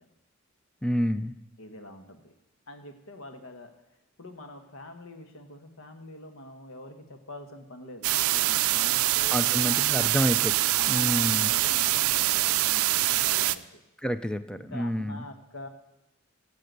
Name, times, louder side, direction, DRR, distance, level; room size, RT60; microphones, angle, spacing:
voice 1, 0.8-1.3 9.3-10.5 10.9-11.5 14.0-15.2, equal, 5° left, 11 dB, 0.3 m, -28 dB
voice 2, 1.6-2.3 2.7-3.7 4.2-10.3 10.8-13.8 14.5-15.7, left 1 dB, 75° left, 7 dB, 1.2 m, -44 dB
sound 1, 8.0-13.6, right 16 dB, 90° right, 0.4 m, -24 dB
9.2 x 7.6 x 8.0 m, 0.93 s
head